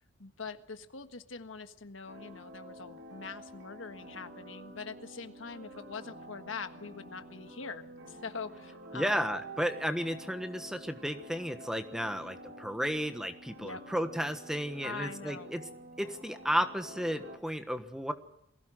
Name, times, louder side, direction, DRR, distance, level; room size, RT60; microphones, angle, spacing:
voice 1, 0.2-9.2 13.6-13.8 14.8-15.5, left 4 dB, 90° left, 9 dB, 1.5 m, -43 dB
sound 1, 2.1-17.4, right 1 dB, 75° right, 4.4 m, -49 dB
voice 2, 8.9-15.6 16.0-18.1, equal, 5° right, 8 dB, 1.3 m, -33 dB
22.0 x 16.5 x 7.8 m, 0.83 s
head